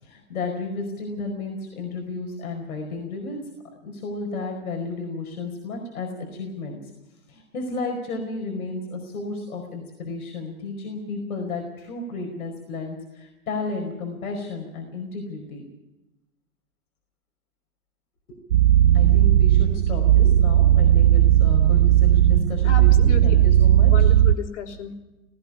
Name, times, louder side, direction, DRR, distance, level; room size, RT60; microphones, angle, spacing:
voice 1, 0.0-3.5 3.8-6.8 7.3-15.6 18.3-18.4 18.9-24.1, left 3 dB, 75° left, 1 dB, 4.9 m, -33 dB
sound 1, 18.5-24.4, right 12 dB, 65° right, 0.7 m, -16 dB
voice 2, 22.6-23.3 23.9-25.0, left 9 dB, 55° left, 3 dB, 3.6 m, -33 dB
18.5 x 15.5 x 9.9 m, 1.1 s
hypercardioid pair, 150°, 43 cm